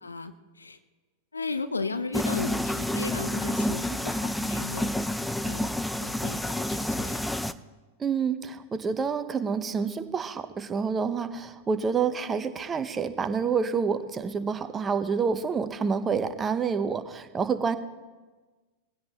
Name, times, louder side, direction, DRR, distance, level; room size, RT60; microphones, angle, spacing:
voice 1, 0.0-0.8 1.3-4.9 5.4-5.7 6.0-6.4 6.7-7.2, left 3 dB, 85° left, 11 dB, 0.7 m, -35 dB
sound 1, 2.1-7.5, left 1 dB, 5° left, 0.5 m, -29 dB
voice 2, 8.0-17.8, right 5 dB, 20° right, 10 dB, 1.0 m, -28 dB
20.5 x 16.0 x 3.0 m, 1.3 s
figure-of-eight pair, 95°, 0 cm